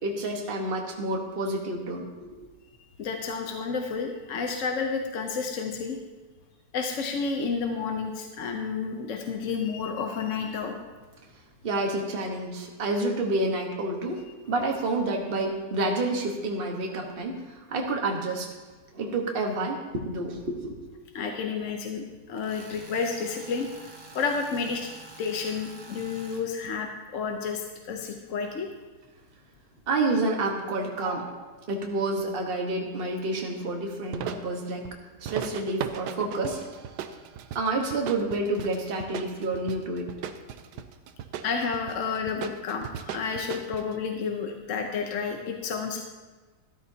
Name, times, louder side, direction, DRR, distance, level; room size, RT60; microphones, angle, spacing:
voice 1, 0.0-2.5 11.6-18.5 18.9-20.9 29.9-34.9 35.2-36.6 37.5-40.1, right 2 dB, 35° right, 1 dB, 1.3 m, -29 dB
voice 2, 3.0-6.0 6.7-10.8 21.1-23.7 24.1-24.9 25.2-28.7 41.4-46.0, left 5 dB, 55° left, 3 dB, 1.0 m, -30 dB
Tools, 22.4-26.4, right 3 dB, 20° right, 0.8 m, -47 dB
sound 1, 34.1-34.5 34.8-34.9 35.3-44.0, right 8 dB, 70° right, 1.2 m, -37 dB
13.0 x 13.0 x 2.8 m, 1.3 s
omnidirectional pair, 2.0 m